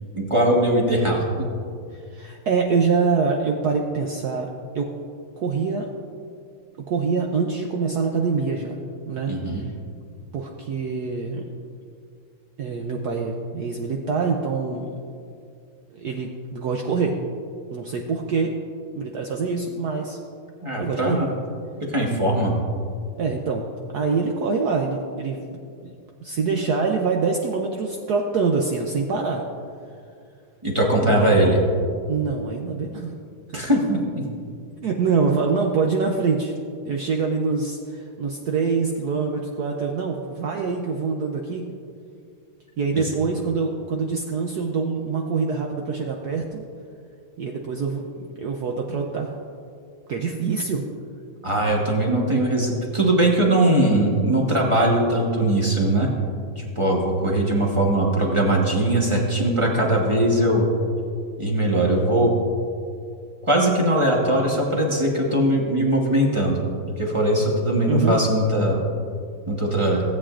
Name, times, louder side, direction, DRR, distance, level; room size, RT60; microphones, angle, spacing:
voice 1, 0.1-1.5 9.3-9.6 20.6-21.3 21.9-22.5 30.6-31.6 33.5-34.2 51.4-56.1 56.6-60.7 61.4-62.3 63.5-66.6 67.0-68.8 69.5-70.0, right 1 dB, 20° right, -2 dB, 0.8 m, -20 dB
voice 2, 1.9-4.9 5.4-5.9 6.9-8.8 9.1-9.3 9.6-9.7 10.3-11.5 12.6-15.0 15.9-17.1 17.7-18.6 19.0-20.2 20.8-21.2 23.2-23.7 23.9-25.9 26.2-29.4 31.0-31.4 32.1-33.2 34.8-36.5 36.9-41.7 42.8-46.6 47.4-49.3 50.1-50.8 67.9-68.2, right 4 dB, 70° right, 1 dB, 0.9 m, -25 dB
16.5 x 8.5 x 2.5 m, 2.3 s
omnidirectional pair, 2.4 m